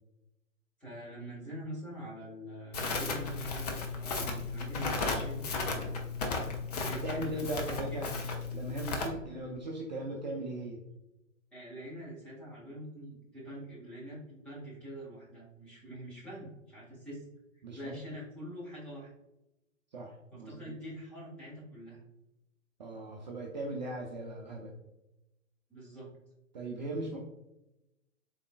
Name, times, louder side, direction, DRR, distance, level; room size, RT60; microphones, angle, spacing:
voice 1, 0.8-5.9 6.8-8.2 9.3-9.5 11.5-17.3 17.7-19.1 20.3-22.0 25.7-26.1 27.1-27.2, right 1 dB, 5° left, -9 dB, 1.0 m, -45 dB
Crackle, 2.7-9.1, left 4 dB, 30° left, 0.6 m, -35 dB
voice 2, 6.9-10.8 17.6-17.9 19.9-20.6 22.8-24.7 26.5-27.2, right 2 dB, 35° right, -2 dB, 0.5 m, -38 dB
3.9 x 3.6 x 2.2 m, 0.93 s
figure-of-eight pair, 120°, 40 cm